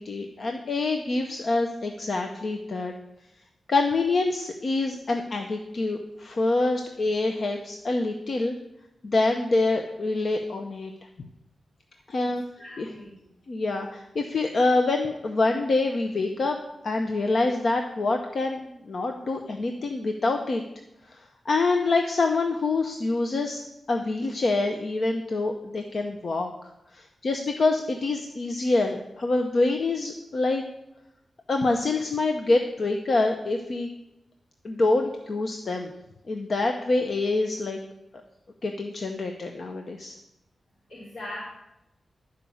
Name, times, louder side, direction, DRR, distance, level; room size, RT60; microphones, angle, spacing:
voice 1, 0.0-2.9 3.7-8.5 9.0-10.9 12.1-12.4 12.8-12.9 13.5-16.6 16.8-20.6 21.1-23.6 23.9-30.6 31.5-33.9 34.6-35.9 36.3-37.8 38.6-40.2, left 3 dB, 45° left, 4 dB, 0.7 m, -26 dB
voice 2, 12.2-13.1 40.9-41.5, left 1 dB, 60° left, -9 dB, 3.7 m, -40 dB
11.5 x 5.1 x 7.1 m, 0.90 s
wide cardioid pair, 160°, 0 cm